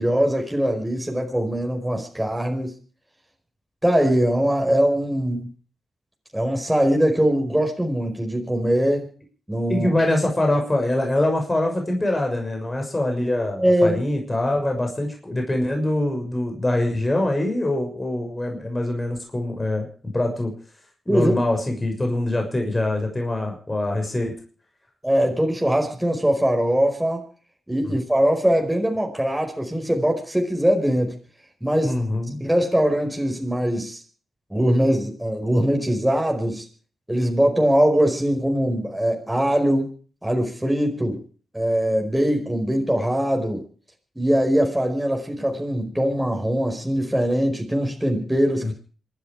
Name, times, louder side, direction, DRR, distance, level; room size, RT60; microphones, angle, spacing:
voice 1, 0.0-2.7 3.8-5.5 6.3-9.1 9.5-9.9 13.6-14.0 21.1-21.3 25.0-27.2 27.7-31.2 31.6-32.0 32.4-34.0 34.5-36.7 37.1-39.9 40.2-41.2 41.5-43.6 44.2-48.7, equal, 10° right, 2 dB, 5.0 m, -21 dB
voice 2, 9.7-19.9 20.1-20.5 21.1-24.3 27.8-28.0 31.8-32.4 48.6-48.7, left 1 dB, 25° left, 2 dB, 6.4 m, -24 dB
27.0 x 10.5 x 4.9 m, 0.41 s
supercardioid pair, 40°, 0 cm